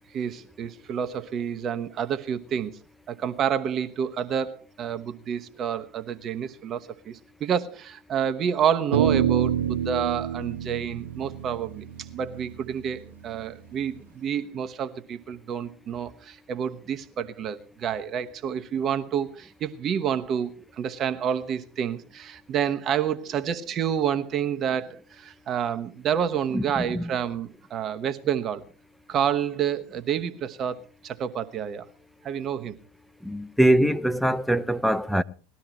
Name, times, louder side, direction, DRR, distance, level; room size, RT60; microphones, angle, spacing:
voice 1, 0.1-2.8 3.1-11.9 12.1-28.6 29.1-31.9 32.2-32.8, right 8 dB, 40° right, 1.1 m, -29 dB
sound 1, 8.9-13.4, right 9 dB, 75° right, 1.4 m, -27 dB
voice 2, 26.5-27.1 33.2-35.2, right 1 dB, ahead, 0.6 m, -23 dB
19.5 x 12.5 x 3.0 m
hypercardioid pair, 85°, 0 cm